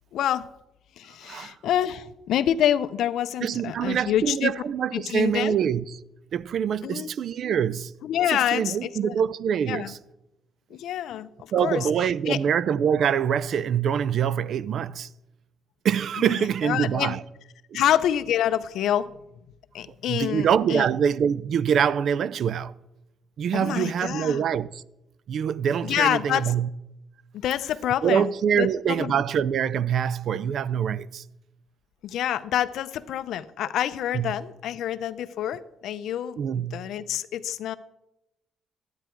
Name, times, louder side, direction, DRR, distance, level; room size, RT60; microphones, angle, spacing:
voice 1, 0.1-0.5 1.0-4.5 4.9-5.5 6.8-7.1 8.0-9.1 9.7-9.9 10.7-11.9 12.3-12.4 16.3-17.1 17.7-19.1 19.7-20.9 23.5-24.4 25.8-26.4 27.3-29.1 32.0-37.8, left 11 dB, 75° left, 0.5 m, -27 dB
voice 2, 1.2-1.6 3.4-6.0 6.3-7.9 8.3-10.0 11.5-15.1 15.8-17.2 17.7-17.8 20.1-22.7 23.4-24.8 25.3-26.7 28.0-31.2 34.1-34.3 36.4-36.8, right 8 dB, 55° right, 0.4 m, -25 dB
12.0 x 9.3 x 4.5 m
cardioid pair, 135°, 0 cm